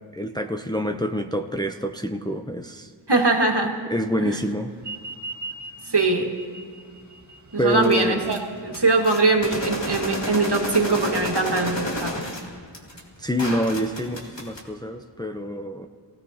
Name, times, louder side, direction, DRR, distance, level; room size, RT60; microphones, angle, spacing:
voice 1, 0.1-2.9 3.9-4.7 7.6-8.3 13.2-15.9, equal, 10° left, 5 dB, 0.7 m, -26 dB
voice 2, 3.1-3.8 4.2-4.4 5.9-6.3 7.5-12.2, right 3 dB, 60° right, 1 dB, 1.9 m, -22 dB
sound 1, 4.8-9.8, right 3 dB, 40° right, 1.6 m, -40 dB
sound 2, 7.7-8.4 8.7-14.6, left 1 dB, 65° left, 2.3 m, -31 dB
27.5 x 17.0 x 2.8 m, 2.1 s
wide cardioid pair, 45°, 46 cm